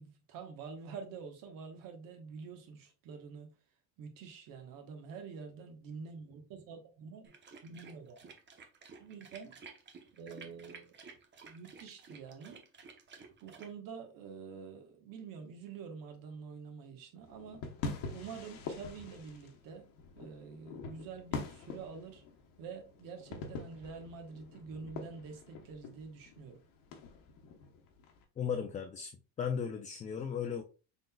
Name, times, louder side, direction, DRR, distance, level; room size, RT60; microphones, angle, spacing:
voice 1, 0.0-3.5 4.0-7.3 7.6-8.3 9.0-9.6 10.1-10.9 11.4-12.6 13.4-17.6 18.0-19.9 20.1-22.2 22.6-26.6, right 5 dB, 65° right, 1.1 m, -47 dB
sound 1, 7.2-13.7, right 5 dB, 30° right, 0.8 m, -53 dB
sound 2, 17.2-28.2, left 4 dB, 65° left, 1.0 m, -45 dB
voice 2, 28.4-29.1 29.4-30.6, left 7 dB, 20° left, 0.3 m, -35 dB
3.9 x 3.8 x 2.2 m
cardioid pair, 110°, 37 cm